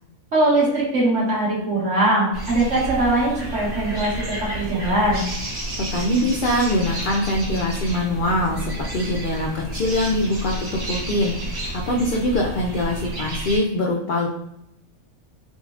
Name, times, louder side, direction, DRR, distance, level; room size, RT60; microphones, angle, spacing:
voice 1, 0.3-5.2, right 2 dB, 60° right, -6 dB, 1.7 m, -21 dB
sound 1, 2.3-13.6, right 1 dB, 90° right, 1.7 m, -31 dB
voice 2, 5.9-14.3, left 1 dB, 75° left, -1 dB, 0.4 m, -23 dB
5.4 x 2.3 x 2.3 m, 0.81 s
omnidirectional pair, 1.4 m